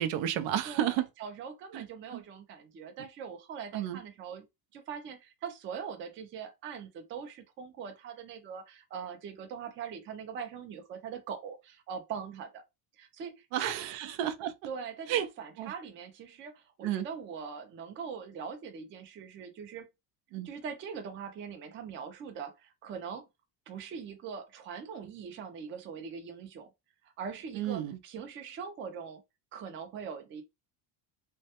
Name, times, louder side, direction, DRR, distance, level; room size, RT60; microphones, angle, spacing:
voice 1, 0.0-1.1 1.7-1.9 2.1-2.2 3.7-4.0 13.5-14.5 15.1-15.3 15.6-15.7 16.8-17.1 20.3-20.5 27.5-28.0, right 11 dB, 85° right, 0.5 m, -31 dB
voice 2, 0.7-4.5 4.7-12.6 13.0-13.7 14.7-19.9 20.4-23.2 23.7-26.7 27.0-29.2 29.5-30.4, right 6 dB, 30° right, 0.3 m, -42 dB
2.2 x 2.1 x 2.7 m
cardioid pair, 150°, 44 cm